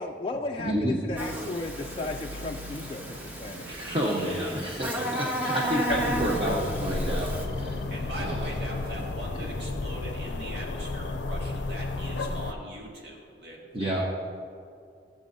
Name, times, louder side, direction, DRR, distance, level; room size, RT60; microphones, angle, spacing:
voice 1, 0.0-3.7, left 2 dB, 30° left, 1 dB, 0.3 m, -35 dB
voice 2, 0.6-1.0 3.6-7.8 8.2-8.4 9.4-9.5 13.7-14.0, equal, 30° right, -3 dB, 0.9 m, -30 dB
sound 1, 1.1-9.1, right 1 dB, 55° right, 0.4 m, -44 dB
Buzz, 1.2-7.4, right 1 dB, 10° right, 0.7 m, -34 dB
voice 3, 3.7-4.7 7.9-14.0, right 1 dB, 75° right, -3 dB, 2.0 m, -41 dB
sound 2, 5.9-12.5, left 3 dB, 85° left, 0.5 m, -32 dB
16.0 x 7.6 x 2.7 m, 2.4 s
head